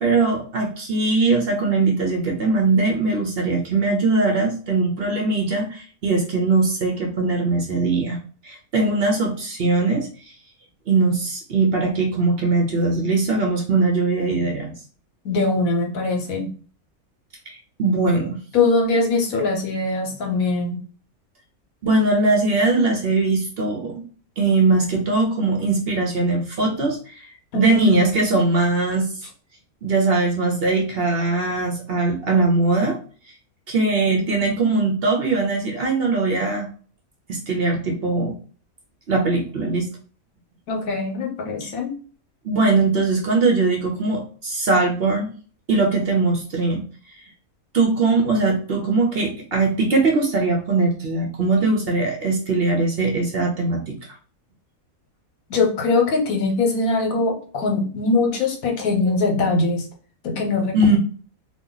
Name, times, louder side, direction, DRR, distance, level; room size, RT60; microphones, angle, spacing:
voice 1, 0.0-8.2 8.4-10.3 10.9-14.7 17.5-18.4 21.8-24.0 24.4-27.3 27.5-29.1 29.8-33.0 33.7-36.7 37.3-38.3 39.1-39.9 41.6-41.7 42.4-45.3 45.7-46.8 47.7-54.0 60.7-61.0, right 3 dB, 55° right, 1 dB, 0.8 m, -20 dB
voice 2, 15.2-16.5 18.5-20.8 27.5-28.0 34.1-34.3 40.7-42.0 55.5-59.9 60.2-60.8, left 3 dB, 75° left, 2 dB, 1.2 m, -22 dB
2.8 x 2.3 x 3.8 m, 0.41 s
omnidirectional pair, 1.5 m